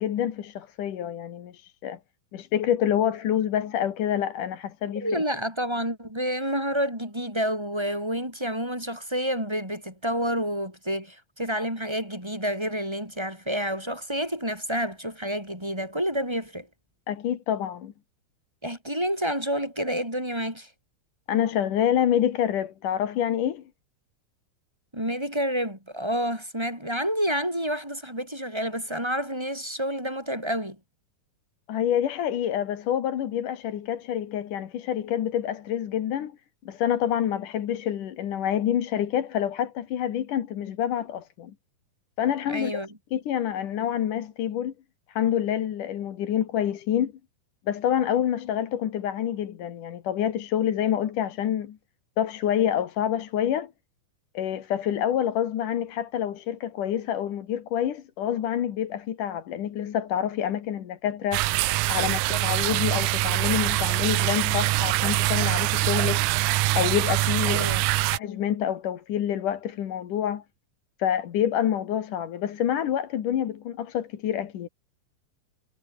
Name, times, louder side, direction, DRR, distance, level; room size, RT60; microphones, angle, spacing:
voice 1, 0.0-2.0 2.3-5.2 17.1-17.9 21.3-23.6 31.7-36.3 36.7-41.5 42.2-42.7 43.1-44.7 45.1-47.1 47.7-51.8 52.2-53.7 54.3-61.4 61.9-66.3 66.8-67.7 68.1-70.4 71.0-74.7, left 10 dB, 65° left, 3.1 m, -27 dB
voice 2, 4.9-16.7 18.6-20.7 24.9-30.8 42.5-42.9 62.0-62.4 67.5-67.8, equal, 5° right, 7.7 m, -29 dB
sound 1, 61.3-68.2, right 19 dB, 80° right, 1.8 m, -24 dB
omnidirectional pair, 4.2 m